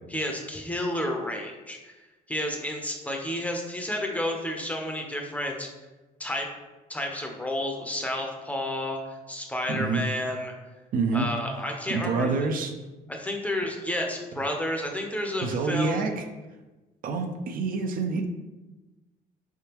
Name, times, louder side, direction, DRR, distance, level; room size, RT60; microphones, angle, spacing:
voice 1, 0.1-1.9 2.3-5.7 6.2-6.5 6.9-10.5 11.1-12.3 13.1-16.0, left 1 dB, 10° left, 1 dB, 0.7 m, -31 dB
voice 2, 9.7-10.0 10.9-11.3 11.9-12.7 15.4-16.2 17.0-18.3, right 4 dB, 55° right, 5 dB, 0.5 m, -27 dB
4.4 x 3.5 x 2.9 m, 1.2 s
cardioid pair, 110°, 17 cm